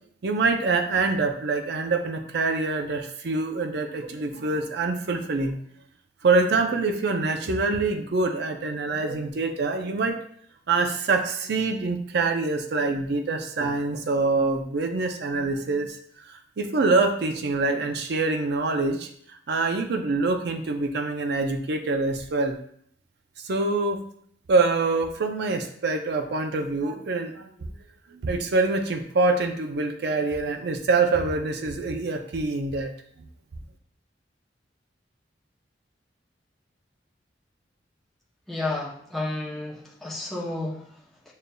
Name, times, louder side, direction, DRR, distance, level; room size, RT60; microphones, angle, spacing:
voice 1, 0.2-5.6 6.2-10.2 10.7-19.1 19.5-22.6 23.4-24.0 24.5-27.7 28.1-32.9, right 3 dB, 65° right, 6 dB, 0.5 m, -25 dB
voice 2, 38.5-41.3, left 2 dB, ahead, -6 dB, 0.6 m, -32 dB
6.4 x 2.5 x 2.2 m, 0.62 s
head